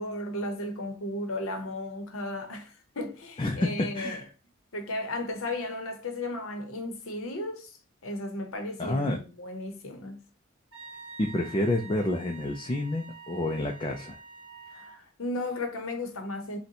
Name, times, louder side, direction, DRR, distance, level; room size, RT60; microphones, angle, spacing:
voice 1, 0.0-4.2 4.7-7.8 8.0-10.2 14.7-16.6, left 1 dB, 70° left, 0.9 m, -35 dB
voice 2, 3.4-3.7 3.9-4.3 8.8-9.2 11.2-14.2, left 1 dB, 25° left, 0.4 m, -29 dB
Wind instrument woodwind instrument, 10.7-15.0, right 4 dB, 60° right, 1.5 m, -47 dB
6.5 x 2.2 x 2.8 m
head